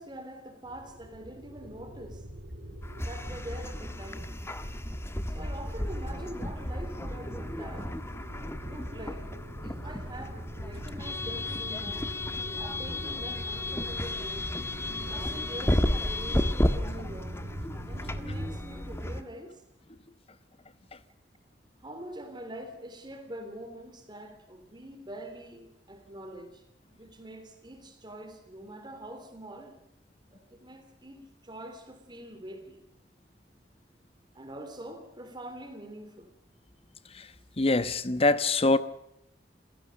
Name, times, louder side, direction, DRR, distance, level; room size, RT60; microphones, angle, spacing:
voice 1, 0.0-2.2 3.1-4.3 5.3-8.0 8.7-9.3 9.6-12.1 12.6-14.5 15.1-17.4 17.9-19.6 21.8-26.6 26.9-29.8 30.3-32.8 34.3-36.3, right 1 dB, 25° right, 3.2 m, -44 dB
sound 1, 0.6-18.6, equal, 60° right, 4.9 m, -43 dB
sound 2, 2.8-19.2, left 1 dB, 15° left, 1.4 m, -33 dB
voice 2, 37.1-38.8, left 2 dB, 35° left, 1.1 m, -25 dB
28.5 x 16.5 x 6.5 m
head